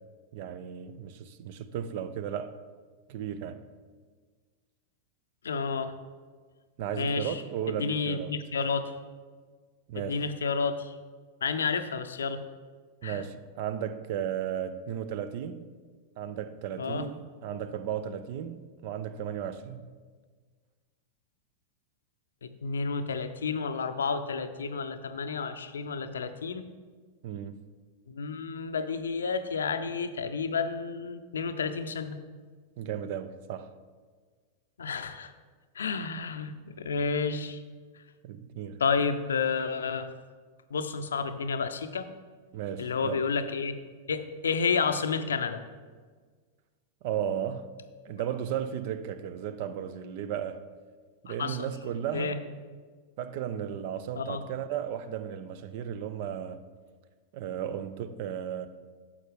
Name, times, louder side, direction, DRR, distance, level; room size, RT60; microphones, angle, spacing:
voice 1, 0.3-2.6 3.1-3.6 6.8-8.4 9.9-10.3 13.0-15.7 16.2-19.9 27.2-27.7 32.8-33.7 38.2-38.8 42.5-43.2 47.0-47.7 48.0-50.6 51.2-52.4 53.2-56.7 57.3-58.7, right 9 dB, 50° right, 0.5 m, -35 dB
voice 2, 5.4-5.9 7.0-7.4 7.7-8.9 10.0-10.9 11.4-12.4 13.0-13.2 16.8-17.1 22.4-26.6 28.1-32.2 34.8-35.3 35.8-37.6 38.8-40.1 40.7-42.1 42.8-43.8 44.1-45.6 51.3-51.7 52.1-52.4 54.2-54.4, left 5 dB, 75° left, 0.5 m, -30 dB
9.8 x 7.1 x 3.4 m
figure-of-eight pair, 90°, 0 cm